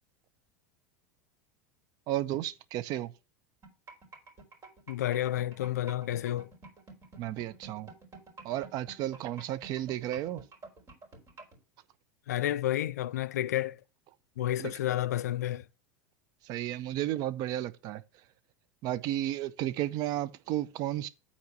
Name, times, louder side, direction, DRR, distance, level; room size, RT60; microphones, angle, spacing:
voice 1, 2.1-3.1 7.2-7.9 8.4-10.4 14.6-14.7 16.5-18.0 18.8-21.1, right 13 dB, 50° right, 0.6 m, -33 dB
sound 1, 3.6-11.6, right 3 dB, 35° right, 3.7 m, -49 dB
voice 2, 4.9-6.5 12.3-13.8 14.4-15.7, left 13 dB, 85° left, 0.3 m, -30 dB
7.0 x 4.3 x 6.3 m
hypercardioid pair, 95°, 9 cm